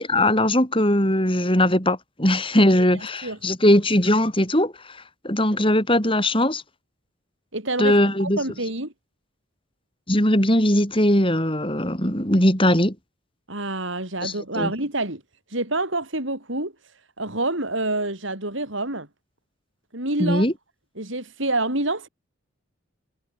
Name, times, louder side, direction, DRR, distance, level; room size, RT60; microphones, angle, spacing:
voice 1, 0.0-4.7 5.2-6.6 7.8-8.4 10.1-12.9 14.2-14.7 20.2-20.5, left 1 dB, 25° left, 7.8 m, -20 dB
voice 2, 7.5-8.9 13.5-15.2 15.5-16.7 17.2-19.1 19.9-20.5 21.0-22.1, right 2 dB, 65° right, 6.1 m, -27 dB
head